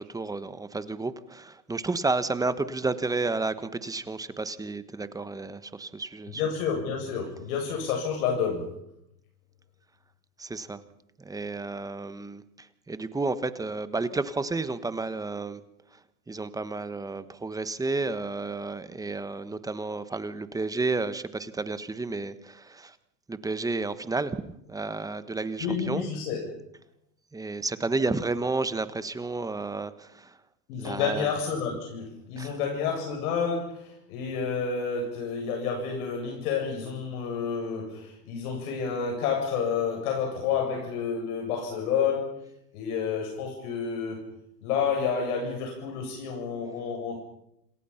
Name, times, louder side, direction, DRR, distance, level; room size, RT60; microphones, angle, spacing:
voice 1, 0.0-6.4 10.4-10.8 11.2-15.6 16.3-22.9 23.3-26.1 27.3-30.3 30.8-31.3 32.4-32.5, right 3 dB, 5° right, 13 dB, 1.2 m, -31 dB
voice 2, 6.3-8.7 25.6-26.5 30.7-42.3 42.7-44.3 44.6-47.2, left 6 dB, 60° left, 1 dB, 7.9 m, -29 dB
28.0 x 27.5 x 5.8 m, 0.80 s
hypercardioid pair, 130°, 50 cm